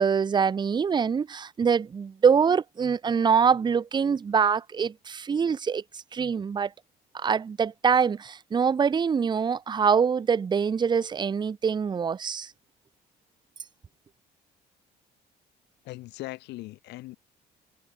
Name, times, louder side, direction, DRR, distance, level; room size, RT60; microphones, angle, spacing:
voice 1, 0.0-6.7 7.1-12.5, right 6 dB, 25° right, 0.7 m, -24 dB
voice 2, 15.8-17.2, left 19 dB, 85° left, 2.3 m, -39 dB
cardioid pair, 110°, 17 cm